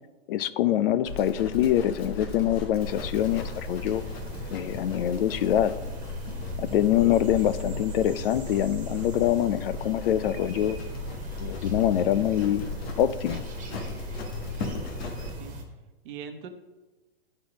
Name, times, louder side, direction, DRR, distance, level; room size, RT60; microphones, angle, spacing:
voice 1, 0.3-4.0 4.5-5.7 6.6-10.8 11.4-12.7 13.0-13.4, left 11 dB, 65° left, 15 dB, 0.5 m, -25 dB
Livestock farm animals working animals, 1.0-15.3, left 2 dB, 80° left, 1.5 m, -37 dB
sound 1, 2.8-15.6, equal, 25° right, 1.4 m, -39 dB
voice 2, 15.0-15.5 16.0-16.5, right 7 dB, 55° right, 6 dB, 1.0 m, -41 dB
9.5 x 4.4 x 5.1 m, 1.2 s
hypercardioid pair, 130°, 31 cm